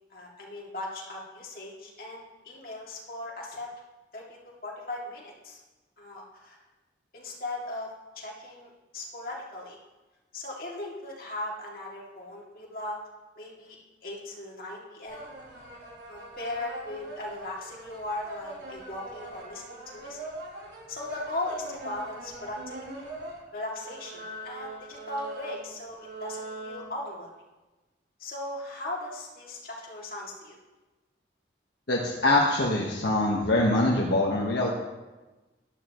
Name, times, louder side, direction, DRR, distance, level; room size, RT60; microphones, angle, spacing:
voice 1, 0.1-3.7 4.1-5.6 6.0-6.6 7.1-9.8 10.3-13.0 13.4-13.8 14.0-15.3 16.1-20.2 20.9-22.8 23.5-27.3 28.2-30.6, left 2 dB, 50° left, -3 dB, 2.5 m, -38 dB
sound 1, 15.0-23.4 23.7-26.9, right 2 dB, 75° right, 3.8 m, -42 dB
voice 2, 31.9-34.7, left 2 dB, 75° left, -2 dB, 1.4 m, -24 dB
13.5 x 11.5 x 3.1 m, 1.1 s
head